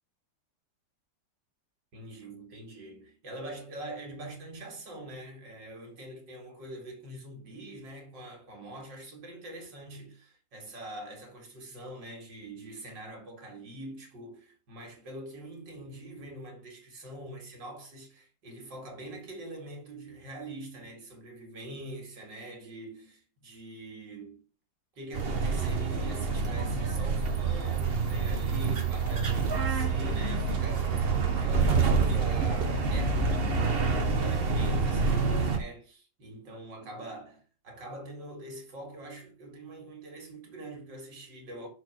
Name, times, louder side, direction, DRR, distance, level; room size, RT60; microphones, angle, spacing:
voice 1, 1.9-24.4 25.0-41.7, right 1 dB, 75° right, 3.1 m, -44 dB
sound 1, 25.1-35.6, right 4 dB, 35° right, 1.2 m, -27 dB
6.6 x 4.6 x 6.3 m
omnidirectional pair, 2.0 m